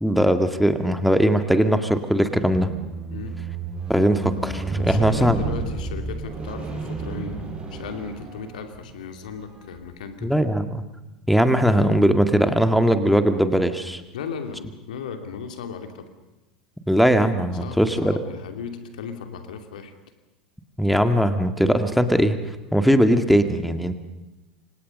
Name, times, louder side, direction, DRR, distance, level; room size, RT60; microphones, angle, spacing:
voice 1, 0.0-2.7 3.9-5.4 10.2-10.8 11.3-14.0 16.9-18.2 20.8-22.4 22.7-24.0, equal, ahead, 8 dB, 2.1 m, -20 dB
Squeak, 2.5-8.9 9.6-9.8, right 3 dB, 25° right, 8.0 m, -31 dB
voice 2, 3.1-3.4 4.8-10.3 14.1-16.1 17.6-19.9, left 6 dB, 70° left, 6 dB, 2.8 m, -36 dB
29.0 x 25.5 x 5.5 m, 1.0 s
hypercardioid pair, 80°, 4 cm